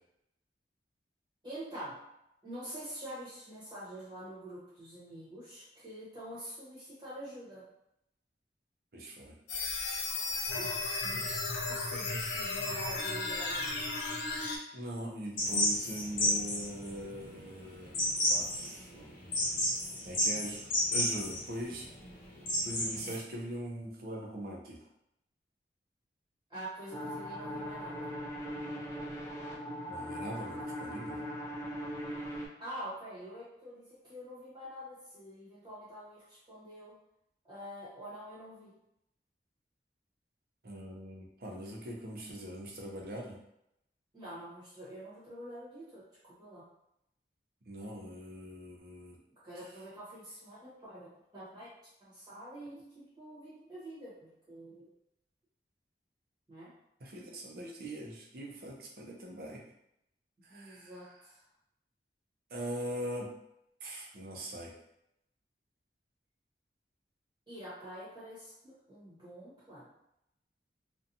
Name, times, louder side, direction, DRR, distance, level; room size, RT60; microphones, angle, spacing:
voice 1, 1.4-2.0 2.4-7.6 10.5-11.4 11.7-13.9 26.5-28.1 32.6-37.0 37.4-38.7 44.1-46.7 49.4-51.7 52.0-54.9 56.5-56.7 60.5-61.4 67.5-69.9, right 1 dB, 25° right, -11 dB, 0.9 m, -46 dB
voice 2, 8.9-9.3 14.7-17.9 18.3-19.1 20.0-21.9 22.6-24.8 29.9-31.2 40.6-43.4 47.7-49.2 57.0-59.6 60.4-61.0 62.5-63.3 63.8-64.7, right 1 dB, 55° right, -1 dB, 0.5 m, -41 dB
sound 1, 9.5-14.6, left 3 dB, 75° left, 0.5 m, -34 dB
sound 2, 15.4-23.2, left 1 dB, 50° left, 0.8 m, -32 dB
sound 3, 26.9-32.5, equal, 15° left, 0.3 m, -40 dB
2.5 x 2.2 x 2.6 m, 0.81 s
head